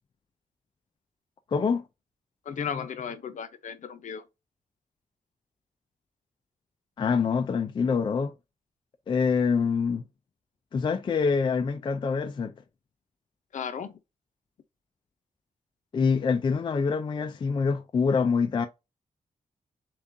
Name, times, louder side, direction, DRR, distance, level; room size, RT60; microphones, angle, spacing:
voice 1, 1.5-1.8 7.0-8.3 9.1-10.0 10.7-12.5 15.9-18.7, left 5 dB, 35° left, 0.4 m, -25 dB
voice 2, 2.4-4.2 13.5-14.0, left 7 dB, 65° left, 0.7 m, -35 dB
7.0 x 2.4 x 2.6 m
wide cardioid pair, 165°, 14 cm